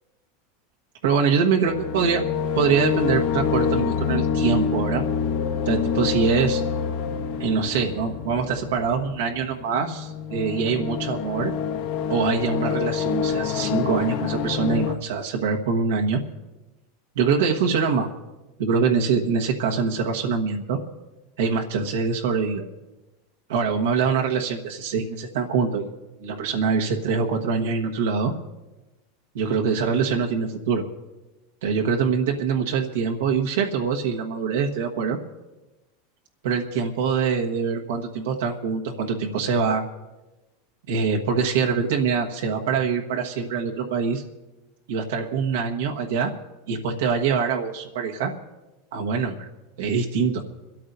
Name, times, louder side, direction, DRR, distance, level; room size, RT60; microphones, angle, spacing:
voice 1, 1.0-2.2 2.5-5.0 5.7-6.6 7.4-11.5 12.1-16.2 17.1-18.1 18.6-20.8 21.4-22.6 23.5-25.9 26.2-28.3 29.3-30.8 31.6-35.2 36.4-39.8 40.9-44.2 44.9-46.3 46.7-48.3 48.9-49.5 49.8-50.4, right 5 dB, 85° right, 2 dB, 1.3 m, -24 dB
sound 1, 1.7-14.9, left 7 dB, 65° left, 1.6 m, -26 dB
27.0 x 13.5 x 2.7 m, 1.1 s
supercardioid pair, 135°, 0 cm